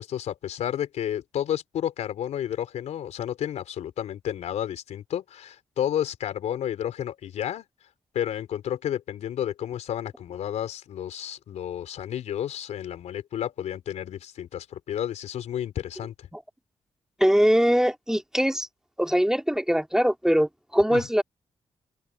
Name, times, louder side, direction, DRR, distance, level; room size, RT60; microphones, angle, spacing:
voice 1, 0.0-7.6 8.1-16.3 20.9-21.1, left 10 dB, 80° left, 4.1 m, -31 dB
voice 2, 17.2-18.7 19.0-21.2, equal, 5° right, 2.4 m, -22 dB
open air
supercardioid pair, 55°, 12 cm